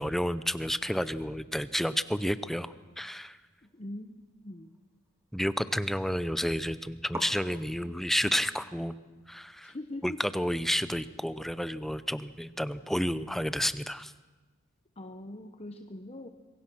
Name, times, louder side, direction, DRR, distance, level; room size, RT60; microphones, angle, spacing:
voice 1, 0.0-3.4 5.3-9.0 9.3-9.7 10.0-14.1, equal, ahead, 13 dB, 0.7 m, -31 dB
sound 1, 3.5-5.4 5.6-6.3 6.6-6.7 7.1-13.9, right 1 dB, 15° right, 1.6 m, -49 dB
voice 2, 3.6-4.8 9.6-10.2 15.0-16.3, left 1 dB, 30° left, 5 dB, 0.9 m, -42 dB
26.0 x 23.0 x 6.2 m, 1.3 s
head